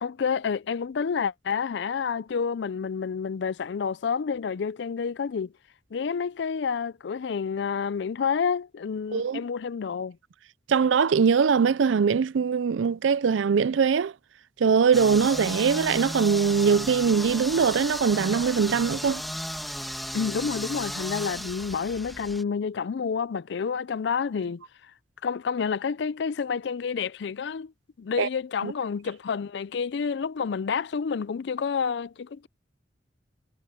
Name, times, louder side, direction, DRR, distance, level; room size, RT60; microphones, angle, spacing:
voice 1, 0.0-5.5 5.9-10.2 20.1-24.6 25.2-27.7 28.0-32.5, left 6 dB, 65° left, 0.4 m, -29 dB
voice 2, 10.7-14.1 14.6-19.2 28.2-28.3 28.6-28.7, right 6 dB, 85° right, 0.4 m, -22 dB
sound 1, 14.9-22.4, equal, ahead, 2.4 m, -35 dB
head